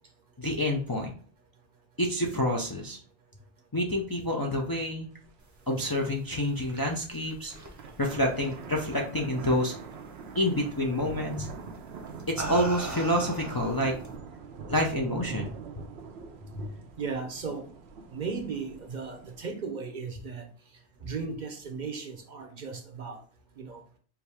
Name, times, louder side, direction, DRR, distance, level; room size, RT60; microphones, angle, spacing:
voice 1, 0.4-1.1 2.0-3.0 3.7-5.1 5.7-7.5 8.0-9.7 10.4-11.5 12.3-13.9 14.7-15.5 16.6-16.7, left 1 dB, 30° left, 0.4 m, -28 dB
sound 1, 5.2-5.3 5.7-5.8 6.2-6.6 7.4-19.5, right 5 dB, 85° right, 0.9 m, -43 dB
sound 2, 6.3-9.2 9.5-9.9 11.2-11.4 12.0-14.2, right 1 dB, 20° right, 0.7 m, -40 dB
voice 2, 17.0-17.7 18.1-20.5 21.0-23.2 23.6-23.8, right 5 dB, 50° right, 0.7 m, -36 dB
4.7 x 2.6 x 3.4 m
omnidirectional pair, 1.1 m